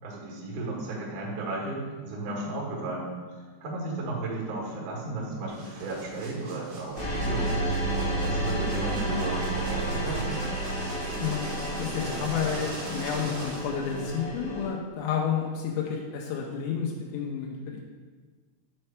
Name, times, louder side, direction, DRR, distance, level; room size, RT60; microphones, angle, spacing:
voice 1, 0.0-3.1 3.6-7.5 7.9-10.4, right 2 dB, 55° right, -4 dB, 2.2 m, -34 dB
sound 1, 5.5-14.2, right 2 dB, 75° right, 1.5 m, -42 dB
sound 2, 6.9-14.7, right 1 dB, 65° left, 1.1 m, -31 dB
voice 2, 11.2-17.9, left 7 dB, 90° left, -2 dB, 3.4 m, -31 dB
7.6 x 3.3 x 5.8 m, 1.5 s
omnidirectional pair, 5.9 m